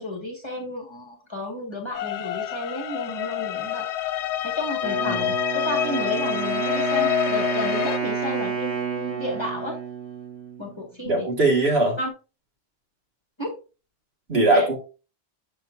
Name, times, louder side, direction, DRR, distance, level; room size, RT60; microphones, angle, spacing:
voice 1, 0.0-3.9 4.4-9.8 10.6-11.3 12.0-12.1 13.4-13.5 14.5-14.7, left 1 dB, 25° left, 2.0 m, -32 dB
sound 1, 1.9-8.0, left 12 dB, 90° left, 0.9 m, -27 dB
Wind instrument woodwind instrument, 4.8-10.8, right 5 dB, 30° right, 3.2 m, -29 dB
voice 2, 11.0-12.0 14.3-14.8, right 2 dB, 70° right, 2.3 m, -21 dB
7.0 x 7.0 x 2.6 m
omnidirectional pair, 1.1 m